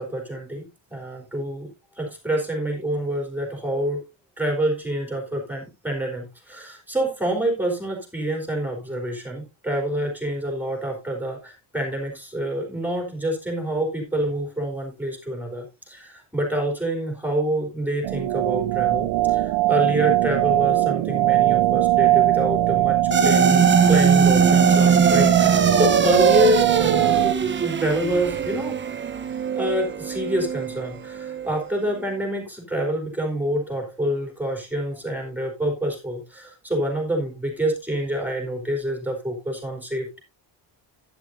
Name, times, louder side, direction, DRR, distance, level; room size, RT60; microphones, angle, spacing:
voice 1, 0.0-1.7 2.0-4.0 4.4-27.3 27.6-28.8 29.6-40.2, right 1 dB, 5° right, 1 dB, 4.0 m, -27 dB
sound 1, 18.0-27.3, right 15 dB, 80° right, 0.8 m, -21 dB
sound 2, 23.1-31.6, right 6 dB, 25° right, 0.8 m, -20 dB
11.5 x 11.0 x 2.6 m, 0.24 s
cardioid pair, 165°, 48 cm